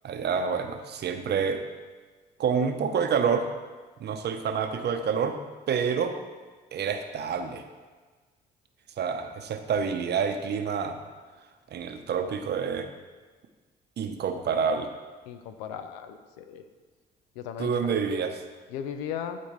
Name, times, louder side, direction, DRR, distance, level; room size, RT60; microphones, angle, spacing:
voice 1, 0.0-1.6 2.4-3.5 4.0-5.4 5.7-6.2 6.7-7.6 9.0-11.0 11.7-12.9 14.0-14.9 17.6-18.4, right 6 dB, 55° right, 7 dB, 0.8 m, -28 dB
voice 2, 15.3-16.6 17.4-17.9 18.7-19.4, left 8 dB, 90° left, 9 dB, 0.5 m, -36 dB
12.0 x 4.2 x 3.2 m, 1.4 s
hypercardioid pair, 55°, 20 cm